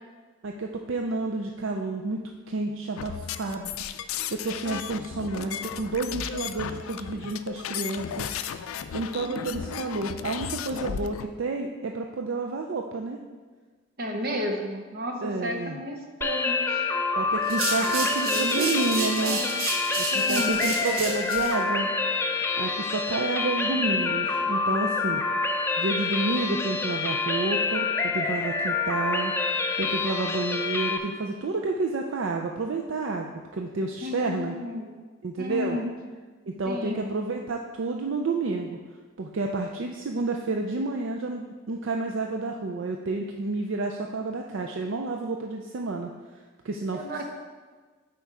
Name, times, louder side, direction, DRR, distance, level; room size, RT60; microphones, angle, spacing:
voice 1, 0.4-3.7 4.3-8.4 8.9-13.2 15.2-15.8 17.2-19.4 20.0-21.9 22.6-25.2 25.8-29.3 29.8-34.5 35.2-35.8 36.5-38.8 39.2-46.1 46.6-47.2, right 3 dB, 65° right, 2 dB, 0.4 m, -30 dB
sound 1, 3.0-11.3, left 8 dB, 85° left, 0.4 m, -35 dB
voice 2, 9.2-10.1 14.0-16.8 17.8-17.9 18.2-19.5 20.1-20.6 34.0-34.8 35.4-35.9 36.6-37.1 46.9-47.2, left 1 dB, 45° right, 2 dB, 1.0 m, -33 dB
sound 2, 16.2-31.0, left 4 dB, 10° left, 0.3 m, -27 dB
sound 3, 17.4-21.5, right 3 dB, 90° right, 1.4 m, -31 dB
8.1 x 4.5 x 4.8 m, 1.4 s
head